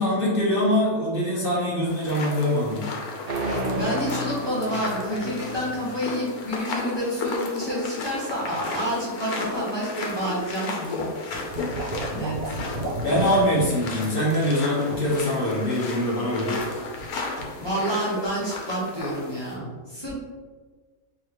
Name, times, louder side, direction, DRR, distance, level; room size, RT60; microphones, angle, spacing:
voice 1, 0.0-2.9 11.6-11.7 13.0-16.7, left 1 dB, 45° left, -5 dB, 1.0 m, -23 dB
sound 1, 1.9-19.6, left 3 dB, 90° left, 1.2 m, -34 dB
sound 2, 3.3-6.2, right 1 dB, 90° right, 0.4 m, -32 dB
voice 2, 3.7-11.3 12.1-12.6 17.6-20.1, equal, 20° left, -9 dB, 1.2 m, -29 dB
sound 3, 11.3-13.7 14.3-14.5 14.9-15.2 16.5-17.1 17.4-17.6, right 1 dB, 70° right, 1.1 m, -33 dB
4.6 x 3.2 x 2.9 m, 1.4 s
omnidirectional pair, 1.5 m